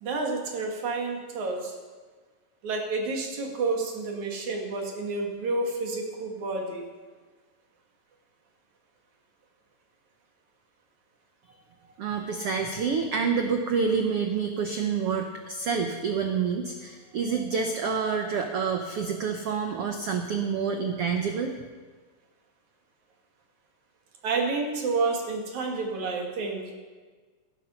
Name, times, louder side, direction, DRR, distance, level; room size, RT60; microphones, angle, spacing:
voice 1, 0.0-1.7 2.6-6.9 24.2-26.6, right 3 dB, 55° right, 1 dB, 3.3 m, -29 dB
voice 2, 12.0-21.5, right 5 dB, 90° right, 4 dB, 1.2 m, -28 dB
16.0 x 12.0 x 5.7 m, 1.4 s
omnidirectional pair, 4.2 m